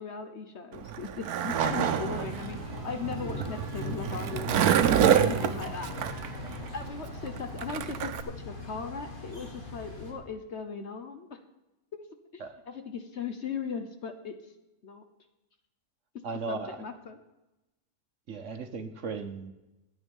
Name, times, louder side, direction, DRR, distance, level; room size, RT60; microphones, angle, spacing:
voice 1, 0.0-4.8 5.1-6.0 6.7-11.4 11.9-12.0 12.3-14.3 14.8-15.0 16.5-17.2, left 5 dB, 50° left, 7 dB, 1.1 m, -38 dB
Skateboard, 0.7-8.2, right 9 dB, 85° right, 1.2 m, -27 dB
sound 1, 1.5-10.1, left 2 dB, 35° left, 2.0 m, -40 dB
voice 2, 16.2-16.8 18.3-19.5, right 4 dB, 55° right, 7 dB, 1.2 m, -37 dB
13.0 x 9.1 x 5.4 m, 0.98 s
omnidirectional pair, 1.6 m